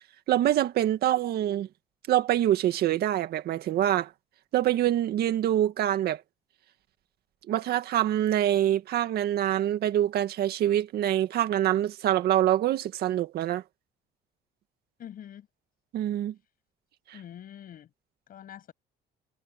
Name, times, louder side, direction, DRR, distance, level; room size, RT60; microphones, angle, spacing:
voice 1, 0.3-1.7 2.1-4.1 4.5-6.2 7.5-13.6 15.9-16.3, right 12 dB, 70° right, 1.9 m, -25 dB
voice 2, 15.0-15.5 17.1-17.9 18.3-18.7, left 10 dB, 55° left, 7.0 m, -45 dB
cardioid pair, 110°, 17 cm